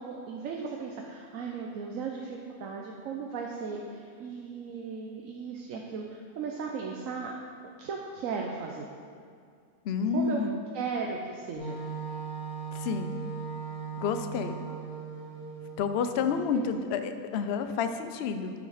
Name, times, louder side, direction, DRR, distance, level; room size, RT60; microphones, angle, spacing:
voice 1, 0.0-7.3 7.8-8.9 10.1-10.4 10.7-11.8 16.3-16.7, right 5 dB, 65° right, 0 dB, 1.1 m, -36 dB
voice 2, 9.8-10.6 12.7-13.1 14.0-14.6 15.8-18.5, left 6 dB, 60° left, 9 dB, 0.7 m, -29 dB
Wind instrument woodwind instrument, 11.6-16.2, right 6 dB, 80° left, 2.8 m, -38 dB
9.4 x 7.4 x 4.9 m, 2.2 s
omnidirectional pair, 1.6 m